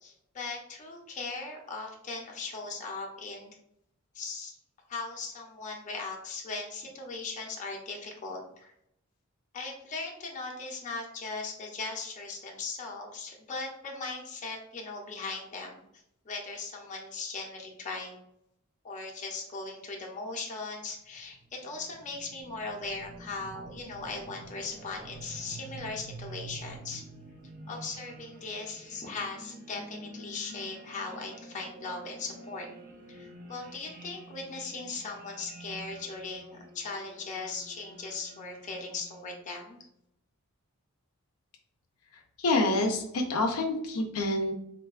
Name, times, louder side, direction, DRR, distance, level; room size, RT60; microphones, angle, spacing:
voice 1, 0.0-3.6 4.1-4.6 4.9-8.7 9.5-15.8 16.2-18.2 18.8-27.0 27.7-32.7 33.1-39.8, left 3 dB, 35° left, -1 dB, 0.6 m, -39 dB
sound 1, 21.2-39.6, right 2 dB, 40° right, 0.5 m, -48 dB
voice 2, 42.4-44.5, left 2 dB, 80° left, 2 dB, 0.5 m, -27 dB
3.8 x 2.2 x 2.3 m, 0.75 s
head